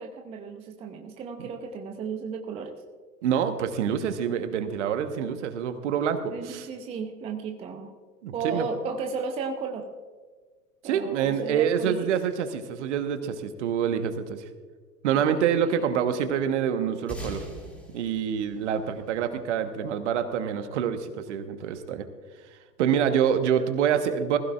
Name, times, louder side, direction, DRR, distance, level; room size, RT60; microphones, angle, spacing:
voice 1, 0.0-2.8 6.3-7.9 8.3-9.9 10.8-12.1 15.1-15.6, right 5 dB, 15° right, 4 dB, 0.6 m, -34 dB
voice 2, 3.2-6.7 8.2-8.7 10.8-14.5 15.0-17.4 17.9-22.0 22.8-24.4, right 8 dB, 45° right, 9 dB, 1.3 m, -26 dB
sound 1, 17.1-19.9, equal, 5° left, 2.7 m, -41 dB
20.0 x 15.5 x 2.5 m, 1.5 s
figure-of-eight pair, 100°, 48 cm